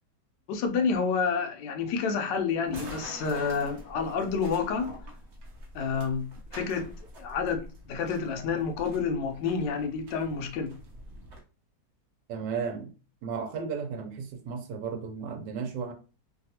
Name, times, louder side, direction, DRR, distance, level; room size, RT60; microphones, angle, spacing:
voice 1, 0.5-4.9 5.7-10.7, left 5 dB, 80° left, 1.2 m, -29 dB
sound 1, 2.7-11.4, equal, 55° right, 0.8 m, -46 dB
voice 2, 12.3-12.9 13.2-15.9, right 6 dB, 75° right, 1.3 m, -34 dB
3.3 x 2.3 x 2.8 m
omnidirectional pair, 1.9 m